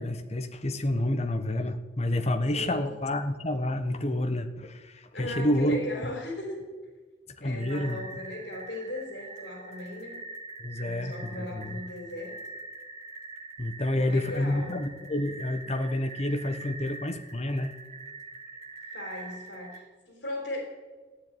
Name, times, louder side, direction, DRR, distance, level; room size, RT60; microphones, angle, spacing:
voice 1, 0.0-5.8 7.4-8.2 10.6-11.8 13.6-17.7, left 1 dB, 35° left, 8 dB, 1.2 m, -29 dB
voice 2, 2.5-2.9 5.1-6.6 7.4-10.2 10.8-12.4 13.9-14.8 18.9-20.6, left 1 dB, 80° left, 1 dB, 4.2 m, -37 dB
sound 1, 7.6-19.8, right 3 dB, 40° right, 1.7 m, -44 dB
15.0 x 9.8 x 9.5 m, 1.3 s
head